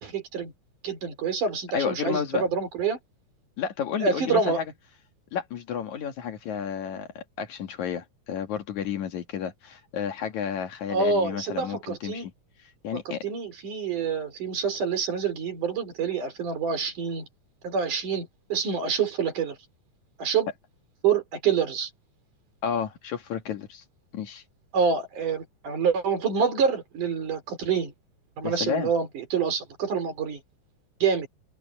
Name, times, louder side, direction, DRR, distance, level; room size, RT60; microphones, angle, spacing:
voice 1, 0.0-0.5 0.8-3.0 4.0-4.6 10.9-12.3 12.9-17.3 17.6-19.6 20.2-20.5 21.0-21.9 24.7-27.9 28.4-30.4 31.0-31.3, right 6 dB, 70° right, 5.5 m, -27 dB
voice 2, 1.7-2.4 3.6-4.6 5.3-12.3 12.8-13.2 22.6-23.8 24.1-24.4 28.4-28.9, left 7 dB, 65° left, 3.1 m, -31 dB
open air
omnidirectional pair, 3.7 m